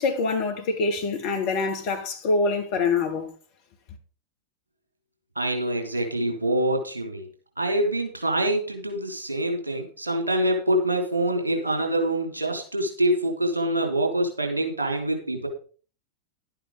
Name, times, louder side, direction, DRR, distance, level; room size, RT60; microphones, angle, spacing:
voice 1, 0.0-3.3, left 3 dB, 45° left, 2.4 m, -25 dB
voice 2, 5.4-7.3 7.6-15.5, right 1 dB, 75° right, 3.7 m, -25 dB
12.0 x 8.8 x 5.0 m
figure-of-eight pair, 90°, 0 cm